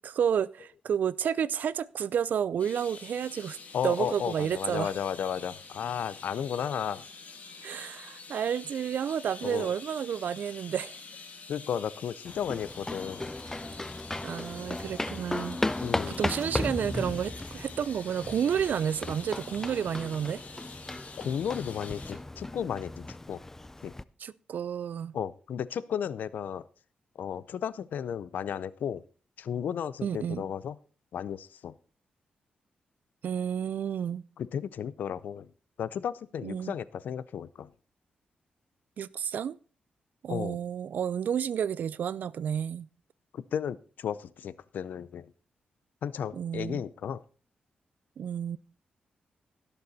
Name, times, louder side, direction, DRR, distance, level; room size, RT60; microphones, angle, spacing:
voice 1, 0.0-3.6 3.8-4.9 7.6-10.9 14.2-15.6 16.2-20.4 24.2-25.1 30.0-30.4 33.2-34.2 36.4-36.8 39.0-39.6 40.2-42.9 46.3-46.8 48.2-48.6, right 8 dB, 70° right, 0.5 m, -31 dB
sound 1, 2.6-22.1, left 4 dB, 55° left, 2.6 m, -47 dB
voice 2, 3.7-7.0 9.4-9.7 11.5-13.3 15.8-16.2 21.2-23.4 23.8-23.9 25.1-26.6 27.2-29.0 29.4-30.8 31.1-31.8 34.4-35.5 35.8-37.7 40.3-40.6 43.3-45.3 46.0-47.2, left 8 dB, 80° left, 0.6 m, -34 dB
sound 2, 12.3-24.0, left 2 dB, 15° left, 0.4 m, -36 dB
16.5 x 6.9 x 4.1 m
cardioid pair, 95°, 3 cm